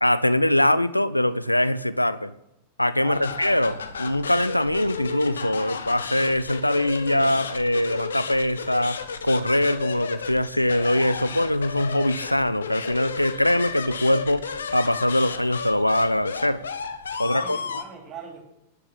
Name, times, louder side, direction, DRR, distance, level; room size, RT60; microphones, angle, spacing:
voice 1, 0.0-2.3 2.8-9.0 9.2-14.4 14.7-16.6 17.2-17.6, left 1 dB, 85° left, 15 dB, 0.6 m, -22 dB
voice 2, 3.0-3.5 17.2-18.4, right 6 dB, 30° right, 2 dB, 3.3 m, -41 dB
sound 1, 3.1-17.8, left 5 dB, 70° left, 1.2 m, -33 dB
11.0 x 9.8 x 9.1 m, 0.85 s
figure-of-eight pair, 90°, 0 cm